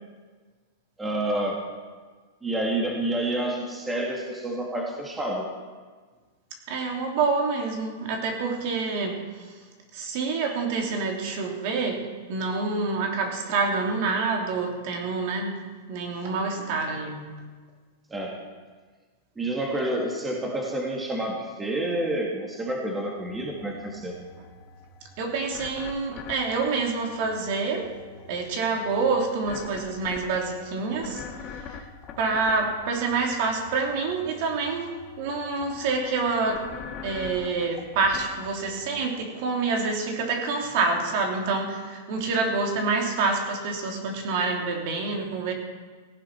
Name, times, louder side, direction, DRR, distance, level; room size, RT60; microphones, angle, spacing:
voice 1, 1.0-1.7 2.4-5.5 18.1-18.4 19.4-24.1, right 1 dB, 10° right, -1 dB, 2.1 m, -29 dB
voice 2, 6.7-9.5 9.9-17.3 25.2-28.0 28.3-31.8 32.2-36.7 37.0-45.5, right 4 dB, 50° right, 2 dB, 2.9 m, -27 dB
sound 1, 23.2-39.1, left 6 dB, 25° left, 1.4 m, -44 dB
17.5 x 16.0 x 4.5 m, 1.5 s
supercardioid pair, 155°, 0 cm